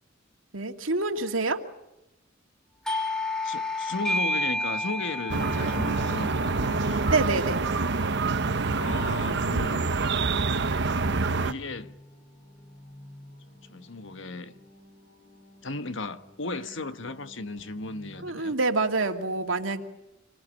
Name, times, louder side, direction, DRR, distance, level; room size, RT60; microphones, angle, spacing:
voice 1, 0.5-1.6 7.1-7.7 18.2-19.8, right 3 dB, 85° right, 2.5 m, -27 dB
Doorbell, 2.8-8.1, left 1 dB, 5° left, 2.2 m, -32 dB
voice 2, 3.4-7.1 8.7-9.9 11.4-11.9 13.7-14.5 15.6-18.5, left 2 dB, 70° left, 1.4 m, -35 dB
sound 1, 4.8-18.3, left 1 dB, 50° left, 7.3 m, -52 dB
sound 2, 5.3-11.5, right 3 dB, 65° right, 1.1 m, -26 dB
26.5 x 21.0 x 8.8 m
head